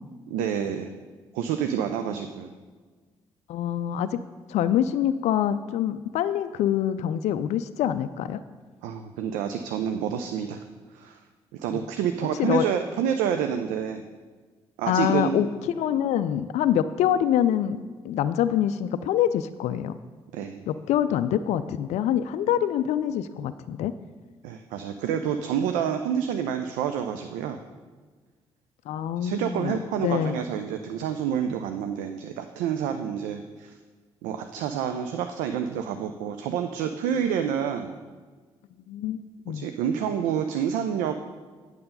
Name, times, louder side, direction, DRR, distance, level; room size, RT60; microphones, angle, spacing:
voice 1, 0.3-0.9 1.3-2.5 8.8-10.6 10.9-11.2 11.5-14.0 14.8-15.5 20.3-20.7 24.4-27.6 29.2-33.8 34.2-38.0 39.5-41.3, right 8 dB, 65° right, 7 dB, 0.5 m, -28 dB
voice 2, 3.5-4.2 4.5-8.4 12.4-12.7 14.9-20.0 20.7-23.9 28.9-29.8 30.0-30.4 38.9-39.2 39.5-39.7, left 10 dB, 55° left, 12 dB, 0.4 m, -25 dB
8.7 x 6.4 x 5.4 m, 1.4 s
figure-of-eight pair, 40°, 14 cm